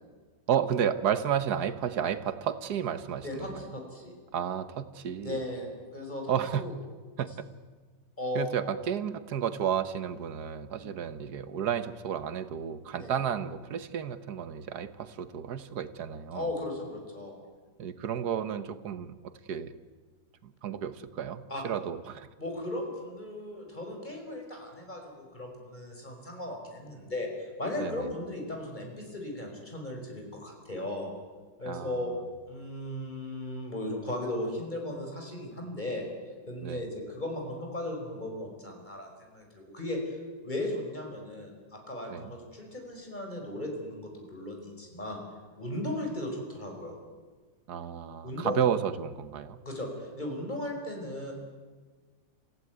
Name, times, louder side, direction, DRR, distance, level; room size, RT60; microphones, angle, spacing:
voice 1, 0.5-3.6 4.3-5.4 6.3-6.6 7.2-7.3 8.4-16.5 17.8-19.7 20.4-22.3 27.8-28.1 31.7-32.0 36.6-36.8 42.1-42.3 47.7-49.6, right 8 dB, 70° right, 12 dB, 1.6 m, -32 dB
voice 2, 3.2-4.1 5.2-6.3 6.6-6.7 8.2-8.7 10.8-11.0 12.9-13.1 16.3-17.4 21.5-21.6 22.4-31.1 31.6-32.1 32.5-36.0 36.5-45.2 45.5-47.0 48.2-48.6 49.6-51.3, left 1 dB, 25° left, 2 dB, 5.3 m, -36 dB
27.0 x 15.5 x 9.4 m, 1.4 s
omnidirectional pair, 1.8 m